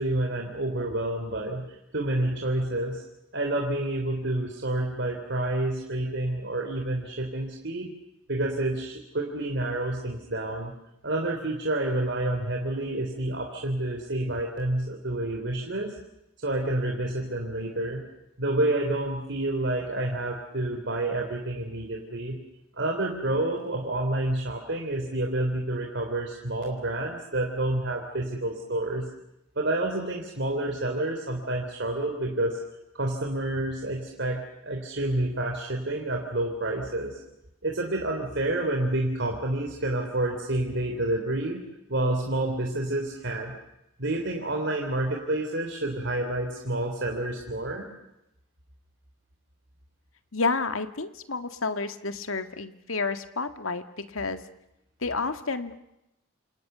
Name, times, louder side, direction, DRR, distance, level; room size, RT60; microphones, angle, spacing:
voice 1, 0.0-1.6 1.9-3.0 3.3-7.9 8.3-10.7 11.0-16.0 16.4-18.0 18.4-22.4 22.7-29.1 29.6-32.6 32.9-37.2 37.6-41.6 41.9-43.5 44.0-47.9, right 1 dB, 55° right, 1 dB, 3.6 m, -29 dB
voice 2, 50.3-54.4 55.0-56.0, left 4 dB, 75° left, 9 dB, 1.9 m, -30 dB
28.5 x 28.0 x 6.9 m, 0.88 s
head